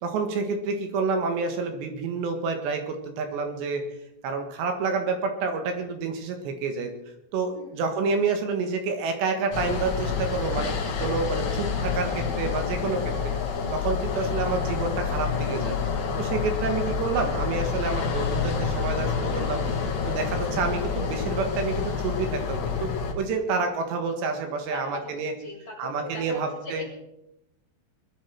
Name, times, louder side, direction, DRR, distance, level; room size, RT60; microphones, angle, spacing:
voice 1, 0.0-3.8 4.2-6.9 7.3-10.7 11.0-13.3 13.7-15.8 16.2-19.6 20.0-22.9 23.2-25.3 25.8-26.8, right 4 dB, 80° right, 5 dB, 3.7 m, -28 dB
sound 1, 9.5-23.1, left 5 dB, 50° left, 2.9 m, -28 dB
voice 2, 24.7-27.1, left 2 dB, 30° left, -3 dB, 3.6 m, -41 dB
21.5 x 11.5 x 4.5 m, 0.85 s
omnidirectional pair, 5.0 m